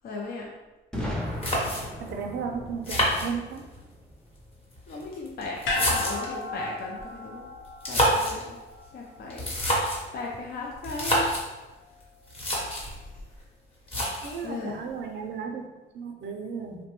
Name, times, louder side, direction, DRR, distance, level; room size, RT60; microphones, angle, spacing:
voice 1, 0.0-0.5 4.9-7.5 7.9-8.6 8.9-9.5 10.1-11.3 12.8-13.0 14.4-14.8, left 3 dB, 50° left, -2 dB, 0.4 m, -36 dB
Boom, 0.9-4.8, left 1 dB, 5° left, 0.5 m, -37 dB
sound 1, 1.0-1.1 1.4-2.1 2.8-3.8 4.7-6.4 7.7-8.4 9.3-10.1 10.8-11.5 12.0-12.1 12.3-12.9 13.9-14.5, equal, 30° left, 0.9 m, -27 dB
voice 2, 2.0-3.6 14.2-15.6 15.9-16.8, right 6 dB, 65° right, 3 dB, 0.4 m, -34 dB
sound 2, 5.6-10.0 10.3-10.4, left 2 dB, 80° left, 0.7 m, -34 dB
3.0 x 2.1 x 2.9 m, 1.2 s
cardioid pair, 90°, 20 cm